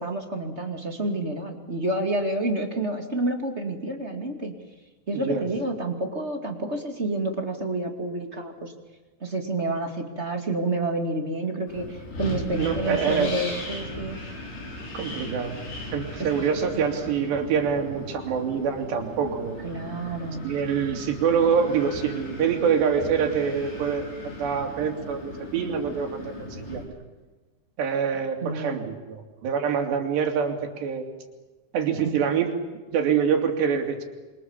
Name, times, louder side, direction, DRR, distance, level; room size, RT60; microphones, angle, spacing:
voice 1, 0.0-4.6 5.1-8.7 9.2-14.4 16.2-16.3 19.6-20.5 28.4-28.9 32.0-32.2, right 2 dB, 25° right, 4 dB, 1.8 m, -29 dB
Wind, 11.7-26.8, left 1 dB, 85° left, 8.3 m, -37 dB
voice 2, 12.5-13.5 14.9-15.6 15.9-19.7 20.4-24.1 24.4-26.8 27.8-31.0 31.7-32.6 32.9-34.0, right 7 dB, 90° right, 3 dB, 5.1 m, -25 dB
27.5 x 26.0 x 7.3 m, 1.2 s
omnidirectional pair, 4.8 m